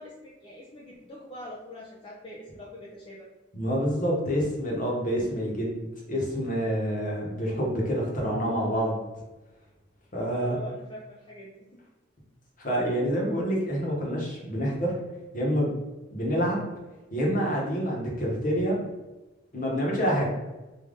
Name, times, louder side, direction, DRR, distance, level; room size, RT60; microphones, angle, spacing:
voice 1, 0.0-3.3 10.3-11.8, equal, 25° left, -4 dB, 0.5 m, -43 dB
voice 2, 3.5-9.0 10.1-10.6 12.6-14.9 15.3-15.7 16.1-16.6 17.1-18.8 19.5-20.3, equal, 45° left, -2 dB, 1.1 m, -27 dB
3.5 x 2.6 x 3.7 m, 1.1 s
head